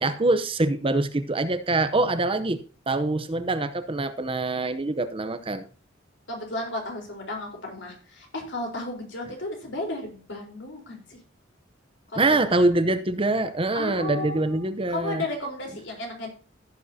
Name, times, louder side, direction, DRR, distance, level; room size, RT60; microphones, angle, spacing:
voice 1, 0.0-5.7 12.2-15.2, right 2 dB, 30° right, 10 dB, 0.7 m, -24 dB
voice 2, 6.3-11.2 12.1-12.4 13.7-16.3, left 2 dB, 65° left, 1 dB, 4.1 m, -34 dB
16.0 x 7.4 x 2.8 m, 0.39 s
head